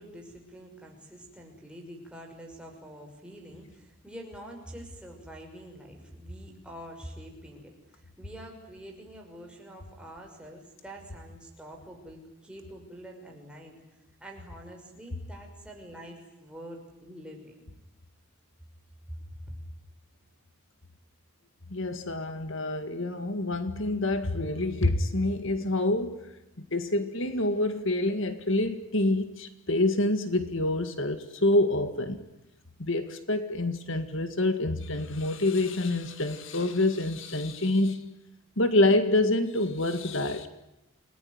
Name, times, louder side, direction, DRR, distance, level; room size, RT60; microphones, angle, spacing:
voice 1, 0.0-13.8 14.2-17.7 19.1-19.5, equal, 5° right, 1 dB, 6.0 m, -46 dB
voice 2, 21.7-26.3 26.7-32.2 32.8-38.0 38.6-40.5, left 2 dB, 60° left, 9 dB, 2.0 m, -27 dB
29.5 x 20.0 x 9.7 m, 0.95 s
head